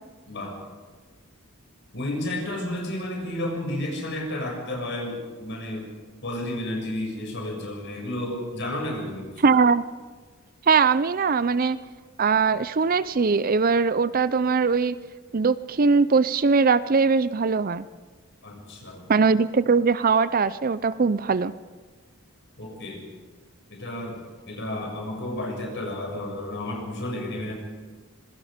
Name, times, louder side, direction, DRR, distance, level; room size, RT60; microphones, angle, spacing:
voice 1, 0.3-0.6 1.9-5.9 6.2-9.5 18.4-19.1 22.6-23.0 23.7-27.5, left 1 dB, 55° left, 0 dB, 6.8 m, -32 dB
voice 2, 9.4-9.8 10.7-11.8 12.2-15.0 15.3-17.8 19.1-21.5, right 5 dB, 40° right, 16 dB, 0.5 m, -21 dB
26.5 x 21.0 x 5.1 m, 1.5 s
head